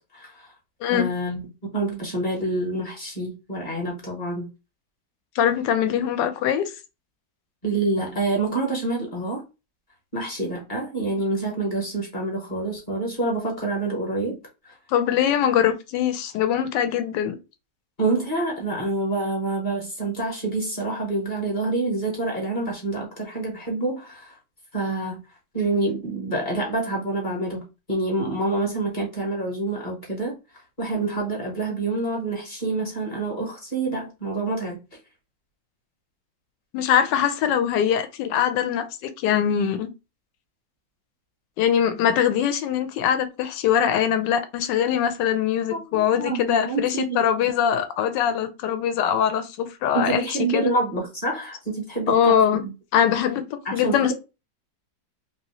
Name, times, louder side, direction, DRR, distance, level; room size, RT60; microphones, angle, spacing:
voice 1, 0.1-0.5 0.9-4.5 7.6-9.4 10.1-14.4 14.6-14.7 18.0-24.4 24.7-25.2 25.5-30.4 30.8-34.8 45.7-47.2 49.9-52.7 53.6-54.1, right 2 dB, 30° left, 1.1 m, -27 dB
voice 2, 0.8-1.1 5.4-6.7 14.9-17.4 36.7-39.9 41.6-50.3 50.5-50.7 52.1-52.6 52.9-54.1, left 9 dB, 75° left, 1.2 m, -22 dB
3.3 x 2.7 x 2.9 m
omnidirectional pair, 2.0 m